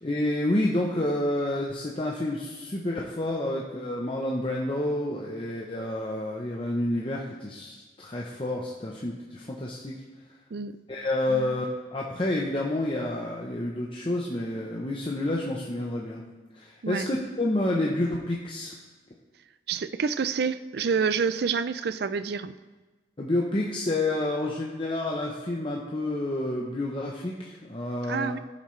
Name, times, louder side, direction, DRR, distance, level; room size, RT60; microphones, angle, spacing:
voice 1, 0.0-9.9 10.9-16.2 16.5-18.7 23.2-28.4, left 1 dB, 30° left, -2 dB, 0.8 m, -29 dB
voice 2, 19.7-22.5 28.0-28.4, right 5 dB, 55° right, 13 dB, 0.4 m, -28 dB
16.0 x 7.3 x 3.2 m, 1.3 s
head